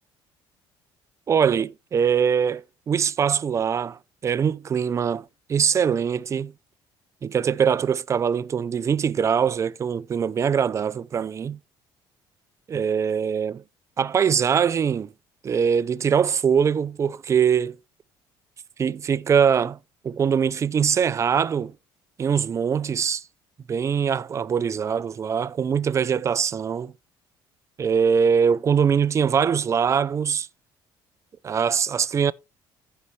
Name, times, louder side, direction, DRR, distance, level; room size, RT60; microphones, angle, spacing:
voice 1, 1.3-6.5 7.2-11.6 12.7-13.6 14.0-15.1 15.4-17.8 18.8-19.8 20.0-21.7 22.2-23.2 23.7-26.9 27.8-30.5 31.4-32.3, right 7 dB, 35° right, 0.5 m, -22 dB
14.5 x 5.6 x 3.2 m
cardioid pair, 120°, 9 cm